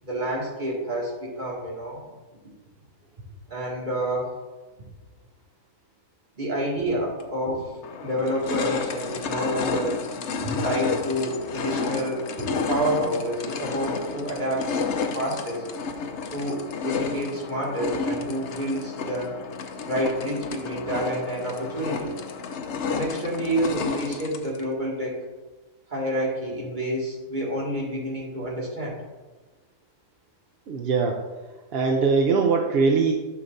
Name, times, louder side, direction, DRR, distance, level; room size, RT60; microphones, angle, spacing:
voice 1, 0.0-2.1 3.5-4.3 6.4-7.7 8.0-10.0 10.3-14.9 15.1-15.6 16.3-19.4 19.8-22.1 22.9-25.2 25.9-28.9, right 1 dB, 30° right, -5 dB, 2.3 m, -28 dB
sound 1, 7.2-7.3 7.8-24.6, left 5 dB, 60° left, 0.9 m, -31 dB
voice 2, 30.7-31.2 31.7-33.1, right 4 dB, 55° right, 2 dB, 0.7 m, -21 dB
11.0 x 5.9 x 2.6 m, 1.2 s
omnidirectional pair, 1.6 m